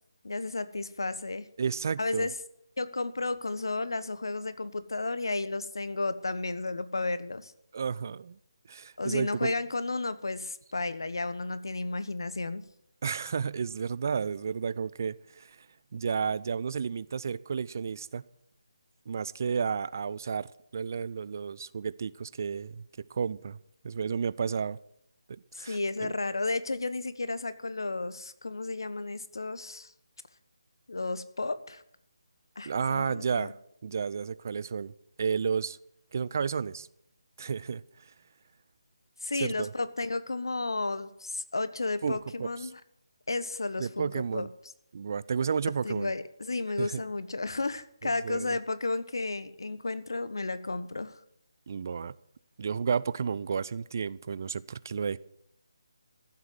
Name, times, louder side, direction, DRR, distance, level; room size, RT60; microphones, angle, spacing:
voice 1, 0.2-1.5 2.0-2.3 2.8-7.5 9.0-12.6 25.5-29.9 30.9-31.8 32.6-33.5 39.2-42.8 43.3-44.5 45.8-51.2, left 3 dB, 65° left, 1.2 m, -33 dB
voice 2, 1.6-2.3 7.7-8.4 8.7-9.5 13.0-15.7 15.9-18.2 19.1-22.8 23.1-23.6 23.8-24.8 25.3-26.1 32.7-33.6 33.8-34.9 35.2-35.8 36.1-36.9 37.4-38.1 39.3-39.7 42.0-42.5 43.8-44.5 44.9-46.1 46.8-47.0 48.0-48.6 51.7-52.2 52.6-55.2, right 6 dB, 45° right, 0.5 m, -32 dB
15.0 x 7.8 x 9.6 m
figure-of-eight pair, 150°, 2 cm